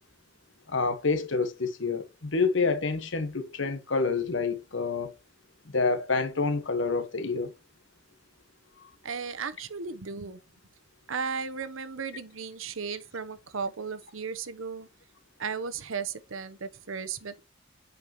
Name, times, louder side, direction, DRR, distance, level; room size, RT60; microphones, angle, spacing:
voice 1, 0.7-5.1 5.7-7.5, left 4 dB, 70° left, 1.3 m, -28 dB
voice 2, 9.0-10.4 11.1-14.9 15.4-17.4, right 5 dB, 80° right, 0.9 m, -35 dB
8.5 x 5.4 x 3.0 m
head